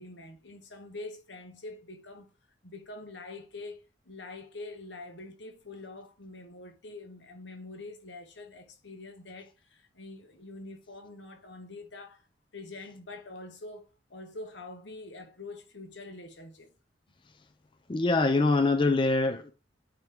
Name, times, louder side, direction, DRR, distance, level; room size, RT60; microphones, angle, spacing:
voice 1, 0.0-2.3 2.6-12.2 12.5-16.7, left 2 dB, 75° left, 1.2 m, -45 dB
voice 2, 17.9-19.5, left 3 dB, 25° left, 0.4 m, -24 dB
8.9 x 3.0 x 3.6 m
head